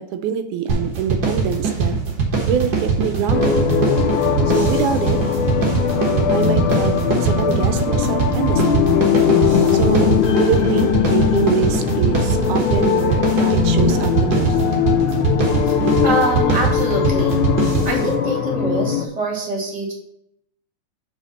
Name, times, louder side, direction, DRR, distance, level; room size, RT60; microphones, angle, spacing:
voice 1, 0.0-1.9 2.5-3.6 4.5-5.2 5.9-8.8 9.7-14.6, right 8 dB, 85° right, 9 dB, 2.0 m, -25 dB
sound 1, 0.7-18.1, right 4 dB, 45° right, 1.4 m, -22 dB
sound 2, 3.3-19.1, left 8 dB, 80° left, 2.2 m, -20 dB
voice 2, 15.7-17.4 17.8-19.9, right 2 dB, 15° right, -1 dB, 2.0 m, -24 dB
5.6 x 5.3 x 6.1 m, 0.75 s
omnidirectional pair, 3.5 m